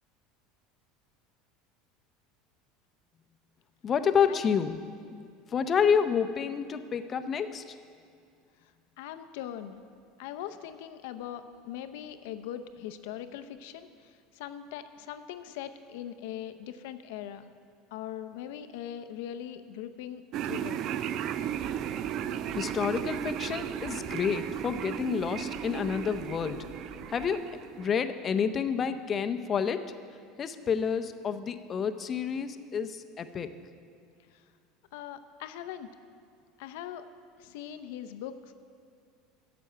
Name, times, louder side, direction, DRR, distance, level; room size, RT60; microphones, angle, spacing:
voice 1, 3.8-4.8 5.1-5.3 5.5-7.6 22.6-26.6 27.1-27.5 27.8-29.9 30.4-33.5, left 7 dB, 30° left, 9 dB, 0.6 m, -29 dB
voice 2, 8.6-9.8 10.2-17.5 17.9-20.9 34.3-34.4 34.9-35.9 36.6-37.1 37.4-38.5, left 10 dB, 75° left, 10 dB, 0.6 m, -41 dB
sound 1, 20.3-28.0, right 10 dB, 50° right, 0.4 m, -35 dB
sound 2, 21.4-27.3, right 1 dB, 20° right, 1.0 m, -49 dB
9.3 x 6.9 x 8.8 m, 2.3 s
supercardioid pair, 120°, 0 cm